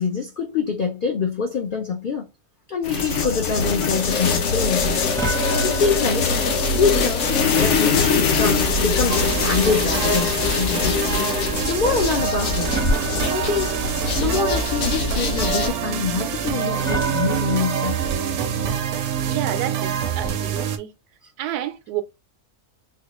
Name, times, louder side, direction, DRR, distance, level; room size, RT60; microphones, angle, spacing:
voice 1, 0.0-2.3 2.7-5.1 5.6-6.3 6.7-7.2 7.6-11.1 11.6-12.8 13.3-13.8 14.2-18.1, left 5 dB, 85° left, 0.4 m, -25 dB
sound 1, 2.8-15.7, left 4 dB, 65° left, 0.9 m, -22 dB
sound 2, 3.4-18.7, right 4 dB, 5° left, 0.4 m, -32 dB
sound 3, 9.1-20.8, right 8 dB, 70° right, 0.8 m, -26 dB
voice 2, 19.2-20.9 21.4-22.0, right 11 dB, 90° right, 1.1 m, -29 dB
3.6 x 2.3 x 2.9 m
omnidirectional pair, 1.6 m